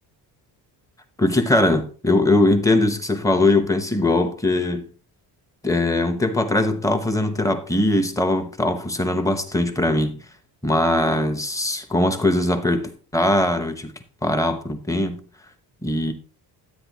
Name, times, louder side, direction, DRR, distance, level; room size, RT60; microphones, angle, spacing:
voice 1, 1.2-4.9 5.6-10.2 10.6-13.9 14.2-15.2 15.8-16.1, left 2 dB, 5° left, 0.9 m, -21 dB
12.0 x 8.9 x 3.0 m
cardioid pair, 170°, 42 cm